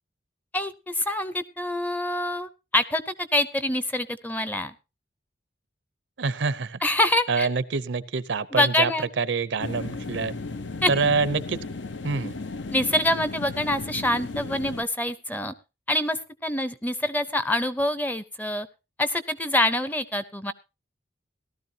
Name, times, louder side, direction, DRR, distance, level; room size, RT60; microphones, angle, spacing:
voice 1, 0.5-4.7 6.8-7.5 8.5-9.1 10.8-10.9 12.7-15.5 15.9-18.7 19.0-20.5, left 1 dB, 10° left, 14 dB, 0.6 m, -25 dB
voice 2, 6.2-6.8 7.3-8.9 9.2-10.3 10.9-11.6 12.0-12.4, right 4 dB, 75° right, 17 dB, 0.6 m, -26 dB
sound 1, 9.6-14.8, left 3 dB, 80° left, 0.8 m, -35 dB
18.0 x 12.5 x 2.8 m, 0.28 s
head